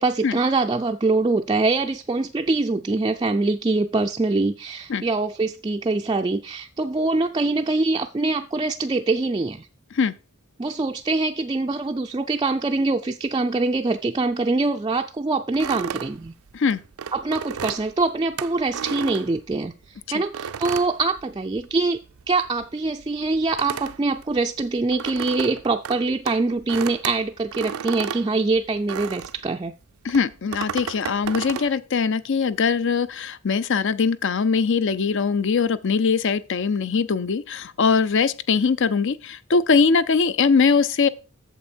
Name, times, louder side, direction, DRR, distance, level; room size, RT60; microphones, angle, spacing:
voice 1, 0.0-9.7 10.6-16.3 17.1-19.7 20.1-22.0 22.3-29.7, right 3 dB, 20° right, 0.3 m, -24 dB
sound 1, 15.5-19.8 20.3-21.8 22.1-29.5 30.1-31.7, right 7 dB, 80° right, 0.5 m, -33 dB
voice 2, 30.0-41.1, left 5 dB, 60° left, 0.5 m, -21 dB
8.5 x 7.1 x 4.4 m
head